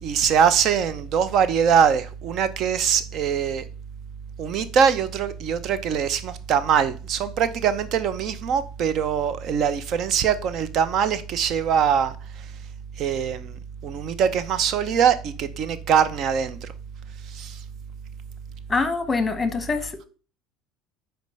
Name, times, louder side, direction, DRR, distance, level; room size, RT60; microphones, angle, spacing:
voice 1, 0.0-3.6 4.4-12.5 13.0-16.7 17.3-17.6, right 7 dB, 50° right, 0.7 m, -23 dB
voice 2, 18.7-20.0, left 4 dB, 15° left, 1.0 m, -24 dB
5.2 x 4.5 x 5.3 m
supercardioid pair, 125°, 0 cm